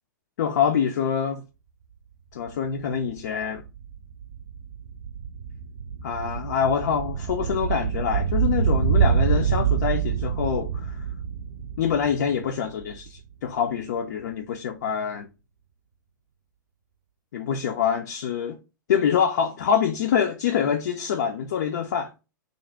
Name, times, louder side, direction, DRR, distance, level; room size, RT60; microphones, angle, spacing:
voice 1, 0.4-1.4 2.3-3.6 6.0-11.1 11.8-15.3 17.3-18.6 18.9-22.1, left 7 dB, 55° left, 0.4 m, -25 dB
sound 1, 2.5-2.6 2.8-13.2 13.5-13.6, right 7 dB, 60° right, 0.4 m, -26 dB
2.5 x 2.0 x 3.3 m
figure-of-eight pair, 105°, 11 cm